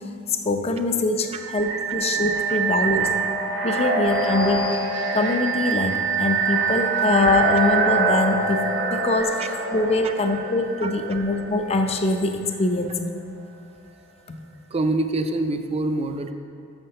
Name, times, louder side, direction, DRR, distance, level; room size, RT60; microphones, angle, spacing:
voice 1, 0.3-3.1 3.6-4.6 5.1-8.6 8.9-9.4 9.7-13.0, left 2 dB, 30° left, 6 dB, 0.5 m, -23 dB
sound 1, 1.3-12.0, right 4 dB, 65° right, 1.2 m, -25 dB
voice 2, 14.7-16.3, right 2 dB, 30° right, 7 dB, 0.4 m, -25 dB
6.4 x 5.8 x 6.6 m, 2.3 s
head